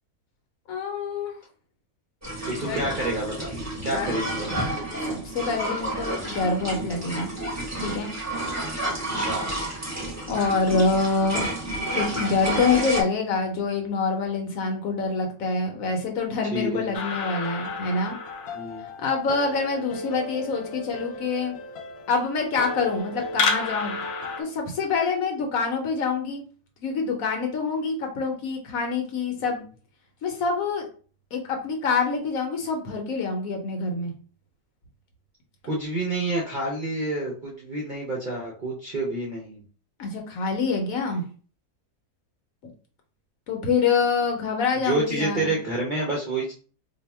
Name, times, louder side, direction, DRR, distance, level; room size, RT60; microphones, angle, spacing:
voice 1, 0.7-1.3 2.6-2.8 3.7-4.1 4.8-7.3 7.8-8.1 10.3-11.4 11.9-18.1 19.0-21.5 22.1-24.0 24.4-26.4 26.8-29.6 30.2-30.9 31.3-34.1 40.0-41.2 43.5-45.5, left 4 dB, 65° left, 2 dB, 1.1 m, -26 dB
sound 1, 2.2-13.0, right 1 dB, 15° right, 0.8 m, -30 dB
voice 2, 2.5-4.6 9.0-9.5 16.5-16.9 18.5-18.9 29.5-29.6 35.6-39.6 44.8-46.5, right 2 dB, 50° right, -3 dB, 0.6 m, -28 dB
sound 2, 16.9-24.4, left 4 dB, 85° left, 0.5 m, -32 dB
2.7 x 2.3 x 4.1 m, 0.41 s
omnidirectional pair, 1.6 m